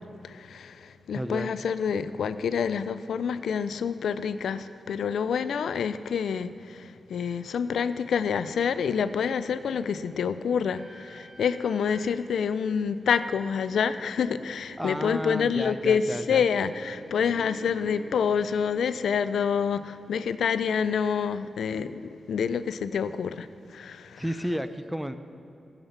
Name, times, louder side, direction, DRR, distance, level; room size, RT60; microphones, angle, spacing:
voice 1, 0.2-24.2, left 7 dB, 90° left, 13 dB, 0.4 m, -27 dB
voice 2, 1.1-1.5 14.8-16.5 24.2-25.1, equal, 5° right, 10 dB, 0.7 m, -32 dB
sound 1, 8.4-20.5, right 1 dB, 50° right, 1.4 m, -50 dB
15.5 x 7.3 x 5.8 m, 2.7 s
cardioid pair, 75°, 0 cm